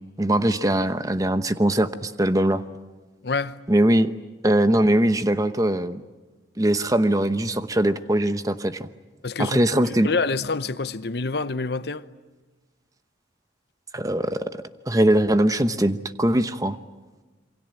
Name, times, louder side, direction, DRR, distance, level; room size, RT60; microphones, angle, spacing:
voice 1, 0.0-2.6 3.7-4.1 4.4-6.0 6.6-8.9 9.4-10.1 13.9-14.5 14.9-16.8, right 1 dB, 20° right, 0.9 m, -21 dB
voice 2, 3.2-3.6 9.2-9.6 9.8-12.0, left 3 dB, 60° left, 0.8 m, -27 dB
27.5 x 24.0 x 9.0 m
head